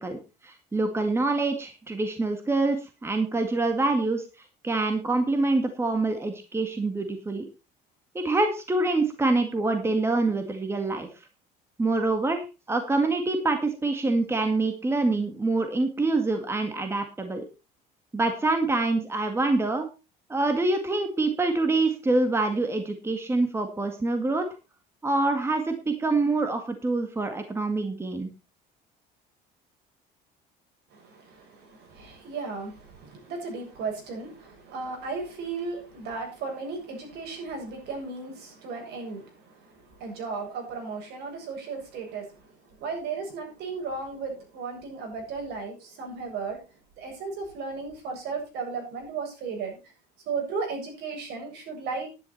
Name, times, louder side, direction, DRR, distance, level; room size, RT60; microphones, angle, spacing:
voice 1, 0.0-7.5 8.1-11.1 11.8-17.4 18.1-19.9 20.3-24.5 25.0-28.3, right 2 dB, 15° right, 6 dB, 2.1 m, -26 dB
voice 2, 30.9-46.6 47.0-49.8 50.3-52.1, right 4 dB, 65° right, 2 dB, 7.8 m, -35 dB
12.0 x 11.0 x 4.4 m, 0.30 s
cardioid pair, 130°, 18 cm